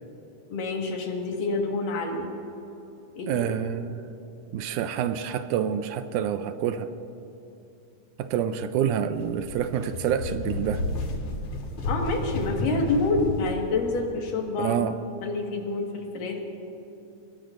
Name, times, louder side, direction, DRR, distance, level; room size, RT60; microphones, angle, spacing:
voice 1, 0.5-2.3 3.2-3.3 11.9-14.7 15.2-16.4, left 3 dB, 80° left, 1 dB, 3.3 m, -27 dB
voice 2, 3.3-4.0 4.5-6.9 8.2-10.8 14.6-15.0, right 9 dB, 80° right, 10 dB, 1.9 m, -27 dB
sound 1, 9.2-13.5, left 2 dB, 60° left, 2.9 m, -31 dB
23.5 x 21.0 x 2.6 m, 2.9 s
omnidirectional pair, 3.7 m